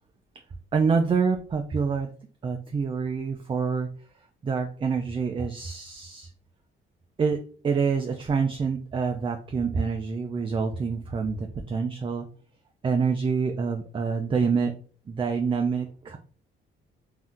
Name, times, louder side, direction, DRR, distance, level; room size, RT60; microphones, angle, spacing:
voice 1, 0.7-2.1 2.4-4.1 4.4-6.3 7.2-7.4 7.6-12.3 12.8-14.7 15.1-16.2, right 5 dB, 25° right, 5 dB, 0.4 m, -26 dB
2.6 x 2.2 x 3.6 m, 0.41 s
cardioid pair, 90°, 20 cm